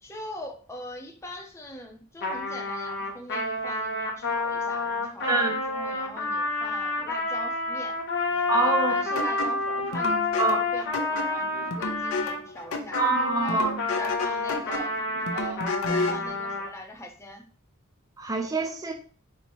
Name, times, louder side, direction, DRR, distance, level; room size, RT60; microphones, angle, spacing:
voice 1, 0.0-8.0 8.3-8.6 8.9-13.0 13.4-15.0 15.3-17.4, left 1 dB, 15° left, 2 dB, 0.7 m, -42 dB
Trumpet, 2.2-12.4 12.9-16.7, left 2 dB, 55° left, 1.0 m, -29 dB
voice 2, 5.3-5.6 8.5-8.9 10.4-10.6 13.0-13.7 18.2-18.9, right 3 dB, 15° right, 3 dB, 0.3 m, -25 dB
sound 1, 9.2-16.3, left 2 dB, 80° left, 0.6 m, -32 dB
4.4 x 2.7 x 3.0 m, 0.41 s
head